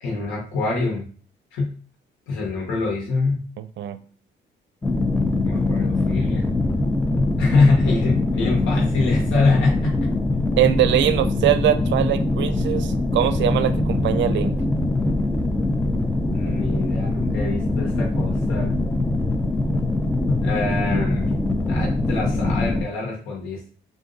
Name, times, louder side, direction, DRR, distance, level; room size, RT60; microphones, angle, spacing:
voice 1, 0.0-1.1 1.5-1.7 2.3-3.4 5.4-6.5 7.4-10.0 16.3-18.8 20.4-21.4 21.7-23.7, left 3 dB, 85° left, -2 dB, 1.1 m, -24 dB
voice 2, 3.6-4.0 10.6-14.5, right 11 dB, 70° right, 12 dB, 0.5 m, -22 dB
sound 1, 4.8-22.8, left 2 dB, 10° left, 0.5 m, -23 dB
3.7 x 2.6 x 3.9 m, 0.43 s
cardioid pair, 90°, 20 cm